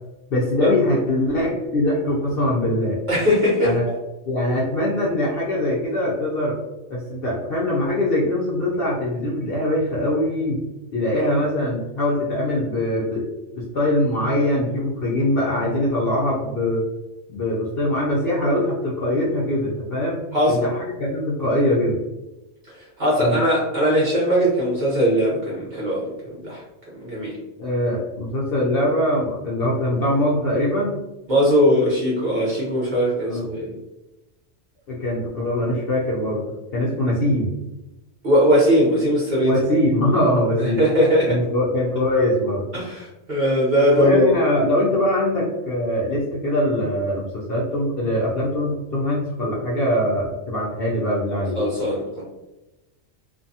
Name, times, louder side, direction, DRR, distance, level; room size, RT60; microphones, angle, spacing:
voice 1, 0.3-3.0 3.6-3.9 4.2-6.6 6.9-10.6 10.9-13.3 13.5-16.8 17.3-22.0 23.2-23.4 27.6-31.0 33.3-33.5 34.9-36.4 36.7-37.5 39.4-40.8 41.3-42.6 43.9-51.6, left 1 dB, 60° left, -5 dB, 0.7 m, -22 dB
voice 2, 3.1-3.7 20.3-20.6 23.0-26.1 26.3-26.6 27.0-27.4 31.3-33.7 38.2-39.5 40.6-41.3 42.7-44.3 51.6-52.2, equal, 40° right, -6 dB, 1.0 m, -19 dB
2.6 x 2.2 x 2.7 m, 1.0 s
omnidirectional pair, 1.4 m